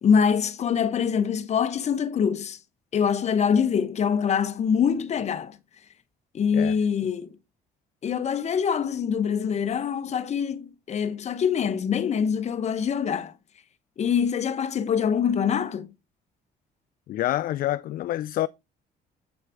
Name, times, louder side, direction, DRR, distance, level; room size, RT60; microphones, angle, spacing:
voice 1, 0.0-2.6 2.9-5.6 6.3-7.3 8.0-13.3 14.0-15.9, left 7 dB, 40° left, 1.0 m, -24 dB
voice 2, 17.1-18.5, left 14 dB, 60° left, 0.4 m, -27 dB
8.1 x 6.4 x 3.5 m
cardioid pair, 110°, 17 cm